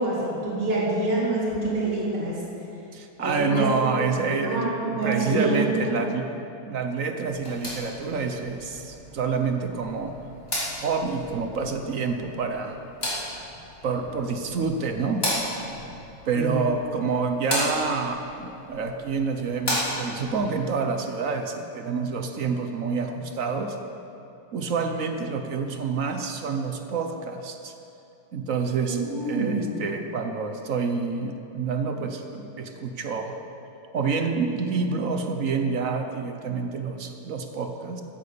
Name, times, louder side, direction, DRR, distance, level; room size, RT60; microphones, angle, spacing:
voice 1, 0.0-2.4 3.2-3.7 4.3-6.0 16.3-16.7 28.9-29.8, right 2 dB, 75° right, -7 dB, 4.3 m, -26 dB
voice 2, 2.9-10.1 10.8-12.8 13.8-15.3 16.3-23.8 24.5-27.7 28.3-33.4 33.9-38.0, right 5 dB, 55° right, 5 dB, 1.0 m, -28 dB
sound 1, 7.3-20.3, equal, 25° left, 3.7 m, -34 dB
15.5 x 9.5 x 6.8 m, 2.8 s
omnidirectional pair, 2.3 m